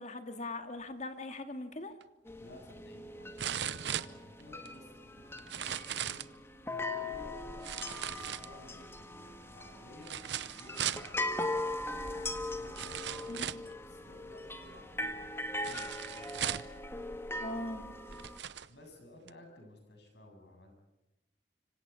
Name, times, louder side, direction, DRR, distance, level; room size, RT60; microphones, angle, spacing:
voice 1, 0.0-1.9 13.3-13.5 17.4-17.8, left 2 dB, 40° left, 7 dB, 2.1 m, -40 dB
sound 1, 2.0-2.1 3.4-4.7 5.4-6.3 7.6-8.8 10.0-11.1 12.1-12.2 12.8-13.7 15.6-16.8 17.6-17.7 18.1-18.7 19.3-19.4, right 10 dB, 70° right, 0.7 m, -38 dB
sound 2, 2.3-18.4, left 2 dB, 15° left, 1.7 m, -40 dB
voice 2, 2.4-12.0 12.5-16.3 18.7-20.8, left 1 dB, 65° left, 4 dB, 7.9 m, -55 dB
26.0 x 25.5 x 5.7 m, 0.98 s
head